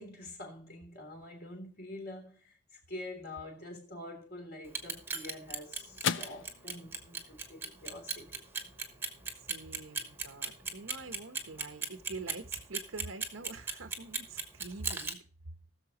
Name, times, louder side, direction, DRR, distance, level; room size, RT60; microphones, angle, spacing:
voice 1, 0.0-8.4, left 1 dB, 45° left, 3.2 m, -46 dB
Clock, 4.6-15.1, right 4 dB, 10° right, 1.1 m, -36 dB
sound 1, 4.7-13.3, left 8 dB, 65° left, 0.5 m, -44 dB
voice 2, 9.3-15.2, right 3 dB, 90° right, 1.0 m, -45 dB
19.5 x 6.8 x 2.9 m
head